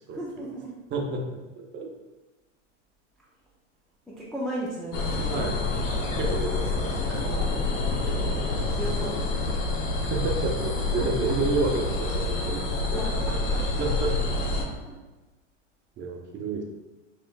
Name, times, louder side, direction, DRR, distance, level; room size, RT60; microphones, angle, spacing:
voice 1, 0.1-0.8 4.1-5.4 7.3-8.1 8.7-9.6 11.0-11.1 12.7-13.7 14.5-14.9, right 1 dB, ahead, -8 dB, 0.3 m, -36 dB
voice 2, 0.9-1.9 5.3-5.5 6.2-7.4 8.0-8.7 10.0-12.6 12.9-13.0 13.4-14.1 16.0-16.6, right 3 dB, 30° right, 2 dB, 0.7 m, -31 dB
sound 1, 4.9-14.6, left 3 dB, 90° left, 0.9 m, -27 dB
5.3 x 3.2 x 2.3 m, 1.1 s
supercardioid pair, 125°, 37 cm